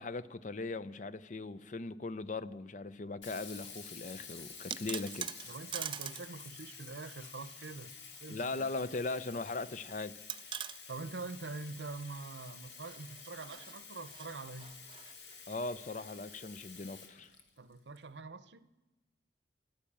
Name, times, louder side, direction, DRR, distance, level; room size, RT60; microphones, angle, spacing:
voice 1, 0.0-5.3 8.3-10.2 15.5-17.3, left 3 dB, 40° left, 0.5 m, -39 dB
Sink (filling or washing), 3.2-18.0, left 5 dB, 75° left, 1.8 m, -51 dB
sound 1, 4.5-6.3 6.6-6.7 8.1-8.9 9.2-9.3 10.3-10.8 12.7-15.6, right 9 dB, 25° right, 0.4 m, -44 dB
voice 2, 5.5-8.8 10.9-14.8 17.6-18.7, right 3 dB, 70° right, 0.7 m, -45 dB
12.0 x 10.0 x 8.6 m
head